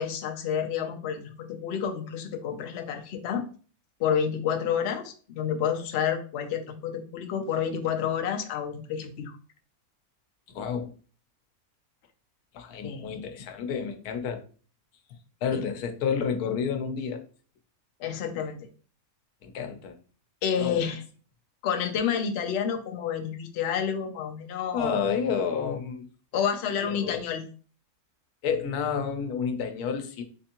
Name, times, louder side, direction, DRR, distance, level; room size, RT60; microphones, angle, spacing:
voice 1, 0.0-3.4 4.0-9.3 12.8-13.2 15.5-15.7 18.0-18.7 20.4-21.0 21.6-25.0 26.3-27.4, left 8 dB, 60° left, 0.7 m, -29 dB
voice 2, 10.5-10.9 12.5-14.4 15.4-17.2 19.4-20.0 20.6-20.9 24.7-26.1 26.8-27.2 28.4-30.2, left 6 dB, 90° left, 1.2 m, -30 dB
3.6 x 3.3 x 2.8 m
omnidirectional pair, 1.6 m